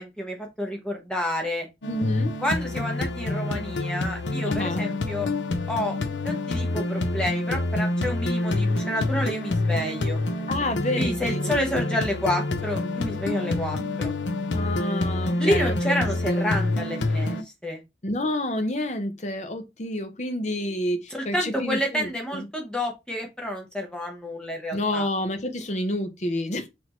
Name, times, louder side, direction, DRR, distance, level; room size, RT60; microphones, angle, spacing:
voice 1, 0.0-1.7 2.4-5.3 5.7-6.0 6.2-10.2 11.0-14.1 15.4-17.8 21.1-25.1, equal, 5° left, 1.1 m, -29 dB
sound 1, 1.8-17.4, left 2 dB, 80° left, 0.6 m, -27 dB
voice 2, 1.9-2.3 4.4-4.9 10.5-11.9 14.5-16.0 16.3-16.6 18.0-22.5 24.7-26.7, left 1 dB, 40° left, 0.7 m, -29 dB
6.0 x 2.9 x 2.9 m
head